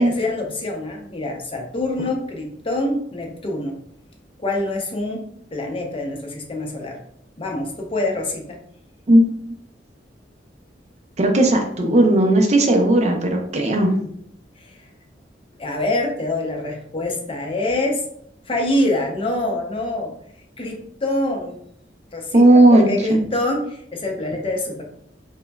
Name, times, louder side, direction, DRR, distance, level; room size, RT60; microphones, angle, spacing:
voice 1, 0.0-3.8 4.4-5.2 5.5-7.0 7.4-8.6 14.6-14.9 15.6-18.0 18.5-20.1 20.6-21.6 22.1-24.8, left 2 dB, 30° left, 1 dB, 0.6 m, -25 dB
voice 2, 11.2-13.9 22.3-23.2, right 1 dB, 40° right, 2 dB, 0.5 m, -15 dB
5.1 x 2.1 x 2.3 m, 0.67 s
head